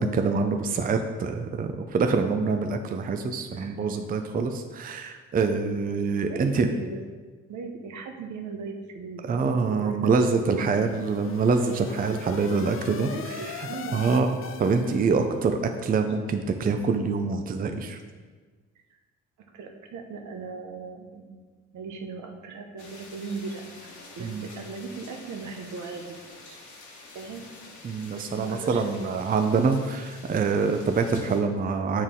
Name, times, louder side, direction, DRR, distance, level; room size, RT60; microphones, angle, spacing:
voice 1, 0.0-6.7 9.3-13.7 13.9-18.0 24.2-24.5 27.8-32.0, right 4 dB, 30° right, 6 dB, 0.5 m, -25 dB
voice 2, 6.2-7.0 7.5-10.9 12.9-14.1 19.5-21.4 21.7-23.9 24.1-26.2 26.5-26.6 27.1-27.4 28.1-29.2, right 4 dB, 75° right, 4 dB, 1.0 m, -38 dB
sound 1, 10.4-15.4, left 8 dB, 45° left, 0.5 m, -41 dB
sound 2, 22.8-31.4, left 3 dB, 70° left, 1.6 m, -47 dB
8.8 x 4.4 x 3.7 m, 1.4 s
cardioid pair, 90°, 30 cm